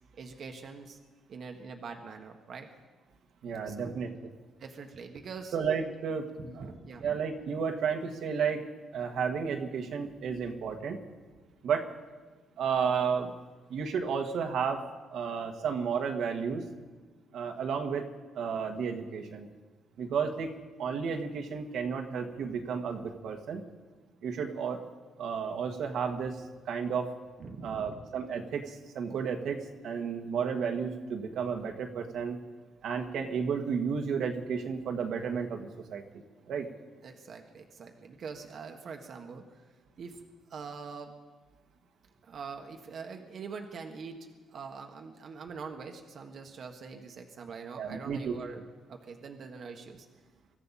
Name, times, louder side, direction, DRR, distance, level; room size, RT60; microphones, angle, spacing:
voice 1, 0.2-1.0 1.3-2.7 3.6-4.0 4.6-5.6 6.4-7.2 27.4-28.0 37.0-39.6 40.0-40.2 40.5-41.1 42.2-48.6 48.9-50.1, right 5 dB, 55° right, 4 dB, 1.4 m, -44 dB
voice 2, 3.4-4.1 5.5-6.7 7.0-8.7 8.9-11.0 11.6-11.9 12.6-13.3 13.7-16.7 17.3-18.1 18.3-19.5 20.0-20.5 20.8-23.6 24.2-24.8 25.2-27.1 27.6-32.4 32.8-36.7 47.8-48.3, right 6 dB, 75° right, 3 dB, 1.6 m, -32 dB
24.5 x 14.0 x 4.2 m, 1.3 s
cardioid pair, 90°, 0 cm